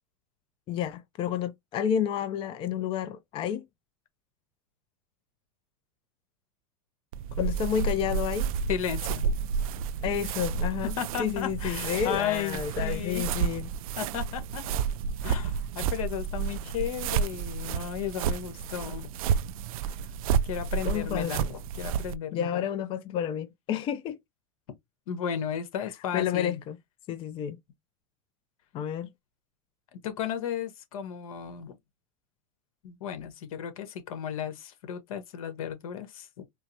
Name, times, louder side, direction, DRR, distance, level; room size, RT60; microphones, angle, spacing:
voice 1, 0.7-3.7 7.4-8.5 10.0-13.7 20.8-21.5 22.3-24.2 26.1-26.8 27.1-27.6 28.7-29.1, left 9 dB, 30° left, 0.4 m, -30 dB
sound 1, 7.1-22.1, right 6 dB, 85° right, 0.4 m, -31 dB
voice 2, 8.7-9.4 11.0-13.3 14.0-14.6 15.2-19.1 20.4-22.6 25.1-26.6 29.9-31.7 32.8-36.4, left 9 dB, 80° left, 1.2 m, -34 dB
4.5 x 2.1 x 2.7 m
supercardioid pair, 135°, 18 cm